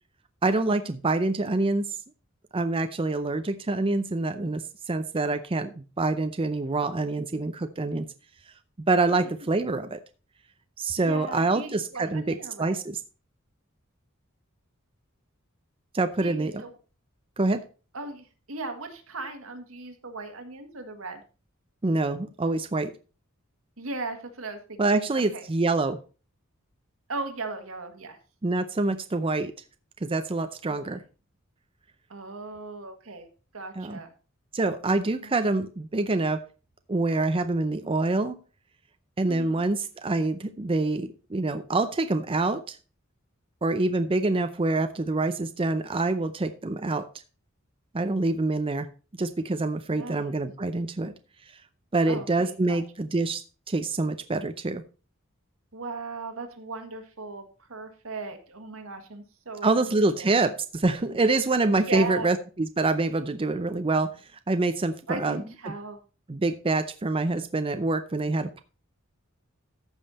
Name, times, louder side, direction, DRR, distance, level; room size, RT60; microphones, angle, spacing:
voice 1, 0.4-1.9 2.5-8.1 8.9-10.0 10.8-13.0 15.9-16.6 17.4-17.6 21.8-22.9 24.8-26.0 28.4-29.5 30.0-31.0 33.8-34.0 34.5-36.4 36.9-38.4 39.2-42.8 43.6-47.1 47.9-48.9 49.2-51.1 51.9-53.4 53.7-54.8 59.6-64.2 64.5-65.7 66.3-68.6, right 2 dB, 25° right, 9 dB, 0.5 m, -26 dB
voice 2, 11.1-12.7 16.2-16.7 17.9-21.2 23.8-25.4 27.1-28.2 30.7-31.0 32.1-33.3 33.5-34.1 35.2-35.3 39.3-39.6 49.9-50.2 52.1-52.8 55.7-59.7 60.2-60.3 61.9-62.4 65.1-66.0, right 3 dB, 80° right, 5 dB, 1.8 m, -37 dB
14.0 x 5.4 x 4.2 m, 0.35 s
head